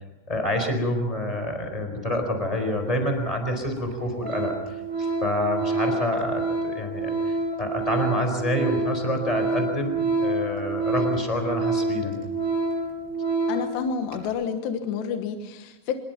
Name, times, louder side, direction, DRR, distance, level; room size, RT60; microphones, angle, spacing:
voice 1, 0.3-12.1, equal, 10° left, 5 dB, 3.5 m, -27 dB
Organ, 3.2-3.3 3.8-3.9 4.2-13.8 14.1-14.3, right 2 dB, 75° right, 7.9 m, -27 dB
voice 2, 13.5-16.0, left 6 dB, 70° left, 6 dB, 3.1 m, -29 dB
25.5 x 22.0 x 5.8 m, 0.95 s
omnidirectional pair, 5.9 m